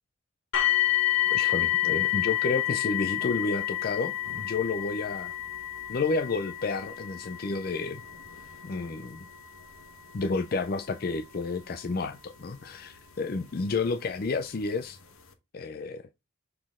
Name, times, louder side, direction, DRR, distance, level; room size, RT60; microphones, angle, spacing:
sound 1, 0.5-13.4 14.3-14.4 14.9-15.0, left 15 dB, 90° left, 1.2 m, -30 dB
voice 1, 1.3-5.3 5.9-8.0 8.6-9.3 10.1-15.0 15.5-16.0, left 4 dB, 45° left, 0.4 m, -31 dB
6.6 x 4.1 x 3.6 m
head